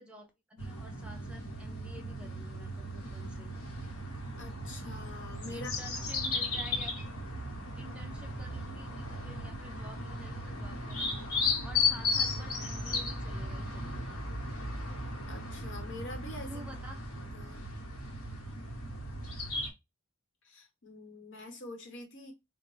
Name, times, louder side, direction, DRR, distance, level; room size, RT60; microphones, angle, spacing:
voice 1, 0.0-3.5 5.5-6.9 7.7-14.2 16.5-17.0, equal, 5° right, 0.6 m, -51 dB
sound 1, 0.6-19.7, left 3 dB, 90° left, 1.0 m, -36 dB
voice 2, 4.4-5.7 15.3-16.7 17.2-17.7 20.4-22.3, left 2 dB, 60° left, 1.0 m, -45 dB
4.0 x 2.2 x 3.0 m
head